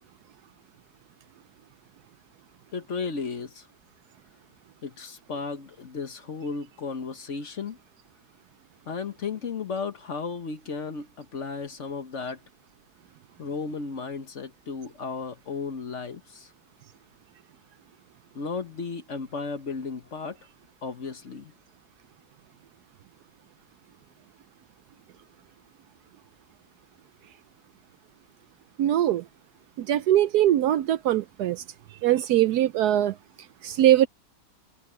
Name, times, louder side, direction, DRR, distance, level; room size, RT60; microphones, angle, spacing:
voice 1, 2.7-3.7 4.8-7.8 8.9-12.4 13.4-16.5 18.3-20.4 20.8-21.5, left 4 dB, 45° left, 1.3 m, -34 dB
voice 2, 28.8-29.2 29.8-31.6 32.0-33.1 33.6-34.1, right 12 dB, 70° right, 1.0 m, -21 dB
omnidirectional pair, 1.9 m